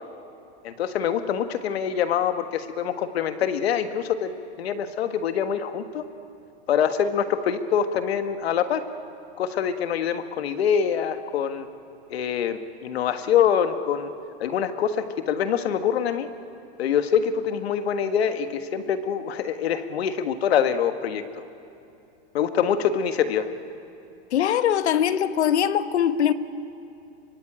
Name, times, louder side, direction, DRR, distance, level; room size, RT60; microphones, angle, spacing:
voice 1, 0.6-6.0 6.7-8.8 9.4-11.7 12.1-14.1 14.4-16.3 16.8-21.2 22.3-23.5, left 8 dB, 70° left, 1.6 m, -25 dB
voice 2, 24.3-26.3, left 9 dB, 85° left, 1.2 m, -22 dB
25.0 x 24.0 x 8.9 m
supercardioid pair, 170°, 33 cm